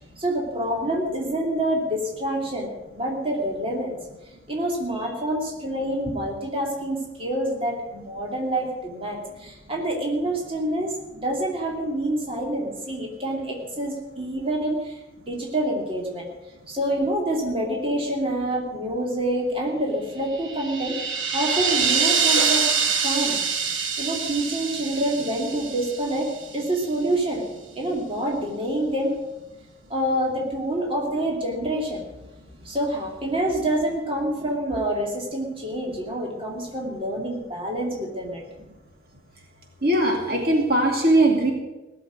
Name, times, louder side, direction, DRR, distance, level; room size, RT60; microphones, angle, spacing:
voice 1, 0.2-4.0 4.5-15.0 15.3-16.3 16.7-21.0 21.3-22.7 23.0-23.4 24.0-26.3 26.5-27.4 27.8-29.2 29.9-32.0 32.6-38.4, right 1 dB, 30° right, -1 dB, 2.7 m, -27 dB
sound 1, 20.3-26.5, right 6 dB, 85° right, 2.0 m, -25 dB
voice 2, 39.8-41.5, right 1 dB, 50° right, 1 dB, 2.6 m, -20 dB
17.5 x 7.2 x 9.5 m, 1.1 s
head